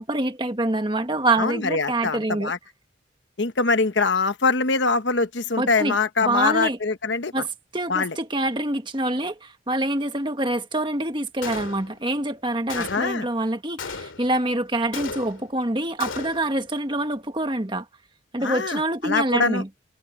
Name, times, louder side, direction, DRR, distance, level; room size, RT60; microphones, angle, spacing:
voice 1, 0.0-2.5 5.6-6.8 7.3-7.5 7.7-17.8 18.3-19.7, right 1 dB, 25° right, 1.7 m, -26 dB
voice 2, 1.4-2.6 3.4-7.4 7.9-8.2 12.8-13.3 18.4-19.6, left 4 dB, 65° left, 1.1 m, -23 dB
Gunshot gunfire, 11.4-12.1 12.7-13.3 13.8-14.4 14.9-15.6 16.0-16.6, left 4 dB, 90° left, 2.5 m, -35 dB
head